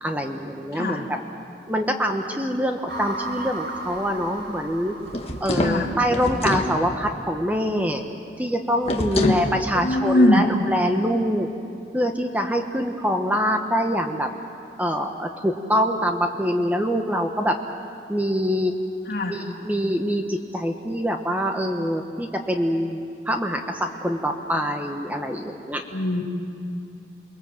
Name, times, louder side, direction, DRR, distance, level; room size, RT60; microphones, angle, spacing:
voice 1, 0.0-1.2 1.7-4.9 5.4-8.0 8.4-11.5 11.9-14.3 14.8-17.6 18.1-18.7 19.2-23.0 23.3-25.8, equal, 10° right, 4 dB, 1.1 m, -24 dB
voice 2, 0.7-1.0 5.5-5.9 9.1-9.3 9.7-10.4 19.1-19.4 25.9-26.2, left 1 dB, 60° left, 0 dB, 2.9 m, -21 dB
sound 1, 2.9-6.2, right 2 dB, 70° right, 4.7 m, -35 dB
sound 2, 5.1-6.7 8.8-9.5, left 1 dB, 35° left, 1.6 m, -25 dB
28.5 x 21.0 x 7.7 m, 2.6 s
head